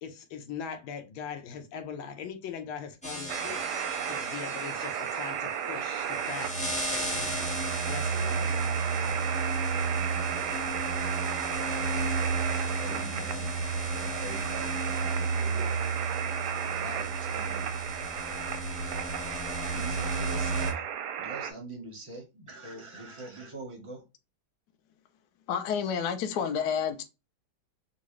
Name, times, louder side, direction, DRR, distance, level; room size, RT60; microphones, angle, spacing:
voice 1, 0.0-8.5, left 7 dB, 90° left, 1.5 m, -41 dB
sound 1, 3.0-20.7, right 3 dB, 10° left, 0.5 m, -33 dB
sound 2, 3.3-21.5, right 9 dB, 70° right, 1.0 m, -34 dB
voice 2, 12.8-13.7 13.9-15.7 16.6-17.7 19.7-20.8 21.2-24.0, right 2 dB, 25° right, 0.8 m, -43 dB
voice 3, 25.5-27.0, left 7 dB, 70° left, 1.0 m, -29 dB
3.8 x 2.4 x 3.1 m
omnidirectional pair, 2.1 m